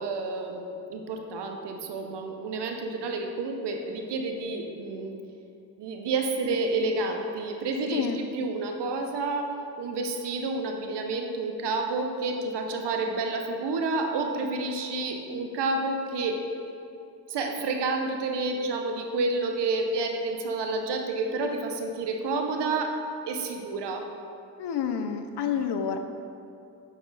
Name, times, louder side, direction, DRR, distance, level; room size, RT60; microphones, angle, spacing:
voice 1, 0.0-5.2 5.8-16.4 17.3-23.0 23.3-24.1, right 3 dB, 85° right, 3 dB, 0.8 m, -30 dB
voice 2, 24.6-26.0, left 7 dB, 80° left, 7 dB, 0.7 m, -28 dB
8.3 x 5.9 x 3.9 m, 2.7 s
supercardioid pair, 45°, 40 cm